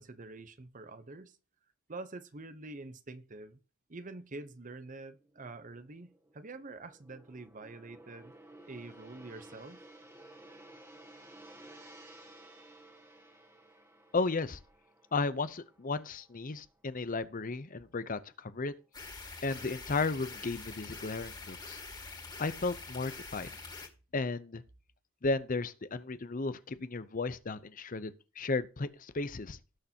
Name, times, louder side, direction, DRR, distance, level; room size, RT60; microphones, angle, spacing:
voice 1, 0.0-1.4 1.9-3.6 3.9-6.1 6.3-8.3 8.7-9.8, right 3 dB, 40° right, 0.8 m, -46 dB
Gong, 5.1-17.2 17.5-17.8, right 1 dB, 10° right, 1.6 m, -56 dB
voice 2, 14.1-14.6 15.1-18.7 19.4-21.8 22.4-23.5 24.1-24.6 25.2-29.6, left 3 dB, 40° left, 0.7 m, -34 dB
sound 1, 18.9-23.9, left 3 dB, 20° left, 2.4 m, -45 dB
17.5 x 6.6 x 2.8 m
head